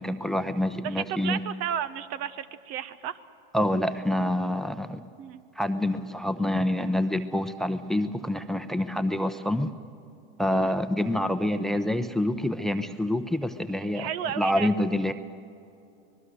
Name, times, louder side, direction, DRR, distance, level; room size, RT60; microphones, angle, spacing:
voice 1, 0.0-1.4 3.5-5.0 5.6-9.7 10.4-14.1 14.4-15.1, left 1 dB, ahead, 10 dB, 0.8 m, -27 dB
voice 2, 0.8-3.2 5.2-5.4 10.5-10.7 13.9-14.7, right 9 dB, 55° right, 13 dB, 1.1 m, -33 dB
25.5 x 20.0 x 6.4 m, 2.6 s
supercardioid pair, 105°, 29 cm